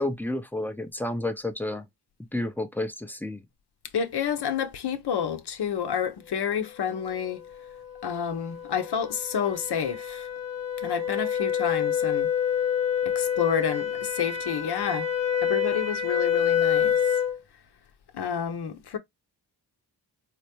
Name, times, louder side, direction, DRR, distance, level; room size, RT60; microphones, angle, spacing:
voice 1, 0.0-1.8 2.3-3.4, left 1 dB, 5° left, 0.6 m, -30 dB
voice 2, 3.9-7.4 8.0-10.3 10.8-12.3 13.0-15.1 15.4-17.0 18.1-19.0, left 7 dB, 60° left, 0.8 m, -29 dB
sound 1, 7.5-17.4, left 8 dB, 35° left, 0.8 m, -27 dB
4.2 x 2.2 x 2.9 m
cardioid pair, 50°, 45 cm